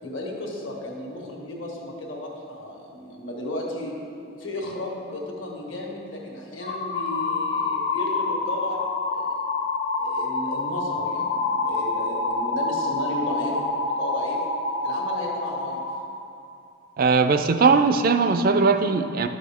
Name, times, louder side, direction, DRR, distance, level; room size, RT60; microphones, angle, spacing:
voice 1, 0.0-4.0 4.4-9.3 10.0-14.5 14.8-15.8, left 1 dB, 65° left, -2 dB, 1.5 m, -34 dB
sound 1, 6.6-15.9, left 3 dB, 50° left, 0.8 m, -27 dB
voice 2, 17.0-19.3, right 4 dB, 45° right, 8 dB, 0.3 m, -19 dB
11.5 x 6.2 x 3.5 m, 2.6 s
head